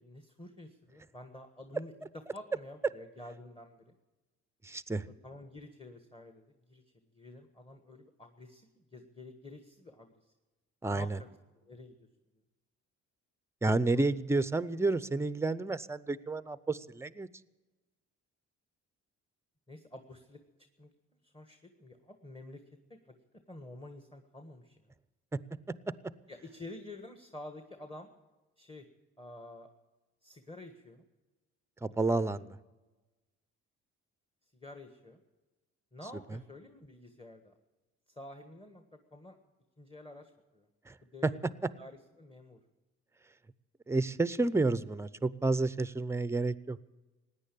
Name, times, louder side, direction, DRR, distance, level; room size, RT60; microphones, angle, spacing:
voice 1, 0.0-3.9 5.2-6.8 7.1-10.1 10.9-11.3 11.6-11.9 13.9-14.1 19.7-20.4 20.8-20.9 21.3-22.6 22.9-23.0 23.5-24.8 26.3-28.1 28.6-28.9 29.2-29.7 30.2-31.0 32.1-32.4 34.6-35.2 35.9-37.5 38.1-39.4 39.8-40.7 41.1-41.4 41.8-42.6, left 2 dB, 15° left, 6 dB, 1.5 m, -49 dB
voice 2, 4.6-5.0 10.8-11.2 13.6-17.3 31.8-32.6 40.9-41.0 41.2-41.3 43.9-46.8, right 2 dB, 10° right, 15 dB, 0.6 m, -30 dB
17.0 x 9.8 x 8.5 m, 1.2 s
cardioid pair, 90°, 30 cm